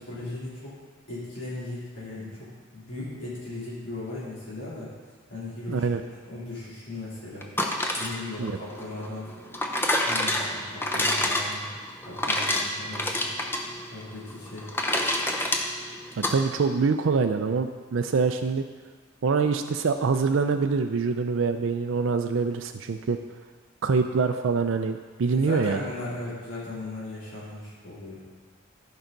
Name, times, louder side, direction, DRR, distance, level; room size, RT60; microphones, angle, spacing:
voice 1, 0.1-0.8 1.1-4.9 5.3-7.5 8.0-9.3 10.0-11.7 12.0-13.3 13.9-14.7 25.4-28.2, left 2 dB, 60° left, -9 dB, 3.3 m, -37 dB
voice 2, 5.7-6.0 8.4-8.6 16.2-18.6 19.2-23.2 23.8-25.8, right 5 dB, 65° right, 6 dB, 0.4 m, -25 dB
sound 1, 7.4-16.4, left 1 dB, 10° left, 0.7 m, -28 dB
15.0 x 5.5 x 3.9 m, 1.5 s
head